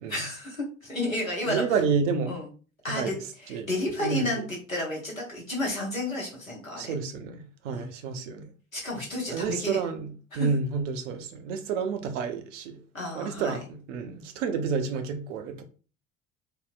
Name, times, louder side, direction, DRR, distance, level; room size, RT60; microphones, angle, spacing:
voice 1, 0.1-1.8 2.3-2.5 2.8-3.2 3.4-6.9 7.7-7.9 8.7-9.9 10.3-10.5 12.9-13.6, left 1 dB, 90° left, 0.9 m, -31 dB
voice 2, 1.5-2.3 2.9-3.2 3.5-3.7 4.0-4.5 6.8-8.5 9.3-12.8 13.2-15.6, right 5 dB, 65° right, 0.6 m, -30 dB
3.6 x 2.0 x 2.4 m
figure-of-eight pair, 55°, 39 cm